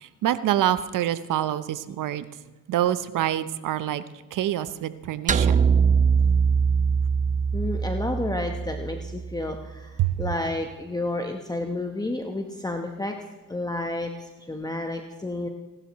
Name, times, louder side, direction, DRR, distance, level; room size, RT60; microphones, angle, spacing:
voice 1, 0.0-2.2 2.7-4.0 4.3-5.7 10.0-10.2, right 12 dB, 55° right, 14 dB, 0.9 m, -26 dB
sound 1, 5.3-9.7, right 6 dB, 20° right, 0.5 m, -22 dB
voice 2, 7.5-13.1 13.5-15.5, left 2 dB, 10° left, 4 dB, 1.1 m, -31 dB
25.5 x 12.0 x 3.1 m, 1.2 s
supercardioid pair, 80°, 37 cm